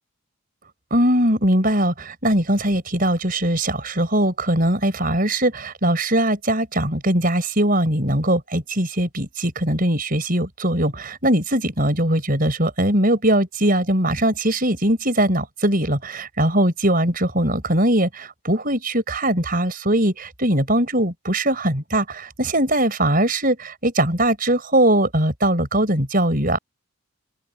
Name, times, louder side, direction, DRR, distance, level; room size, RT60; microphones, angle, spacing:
voice 1, 0.9-26.6, right 1 dB, 40° right, 5.2 m, -20 dB
open air
head